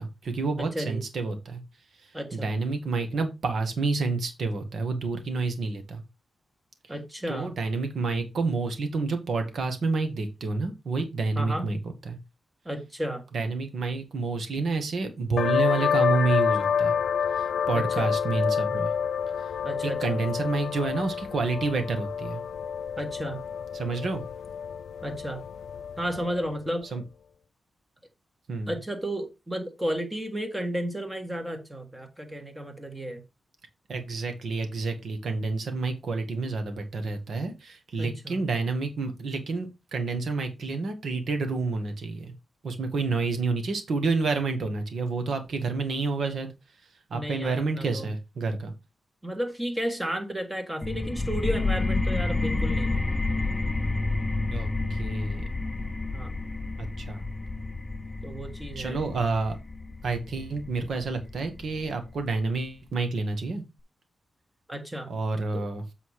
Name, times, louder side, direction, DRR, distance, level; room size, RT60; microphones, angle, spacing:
voice 1, 0.0-1.6 2.0-6.0 7.3-11.8 12.0-12.2 13.3-17.0 17.3-18.9 19.8-22.4 23.7-24.2 26.9-27.0 28.5-28.7 33.9-42.3 42.6-46.5 47.1-48.7 54.5-55.5 56.8-57.2 58.7-59.6 60.0-63.6 65.1-65.8, right 3 dB, 60° right, 1.8 m, -29 dB
voice 2, 0.6-1.0 2.1-2.5 6.9-7.5 11.3-11.7 12.6-13.2 17.7-18.1 19.6-20.2 23.0-23.4 25.0-25.4 26.0-26.9 28.7-33.2 38.0-38.4 47.1-48.1 49.2-53.0 56.1-56.3 58.2-59.0 64.7-65.1 65.5-65.6, right 1 dB, 10° right, 1.6 m, -33 dB
sound 1, 15.4-26.7, left 7 dB, 90° left, 0.4 m, -28 dB
sound 2, 50.8-62.2, left 2 dB, 15° left, 0.6 m, -30 dB
8.0 x 4.1 x 4.9 m
wide cardioid pair, 170°, 0 cm